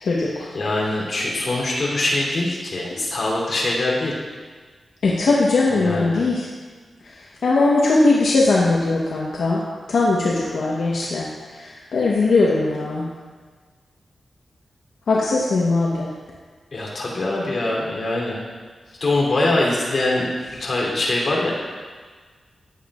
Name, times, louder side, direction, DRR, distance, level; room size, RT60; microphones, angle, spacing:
voice 1, 0.0-0.5 5.0-6.5 7.0-13.0 15.1-16.1, left 3 dB, 80° left, -5 dB, 1.2 m, -20 dB
voice 2, 0.5-4.1 5.7-6.2 16.7-18.4 19.0-20.3 20.6-21.5, left 2 dB, 50° left, -4 dB, 3.4 m, -23 dB
15.0 x 9.4 x 2.5 m, 1.5 s
wide cardioid pair, 120°, 0 cm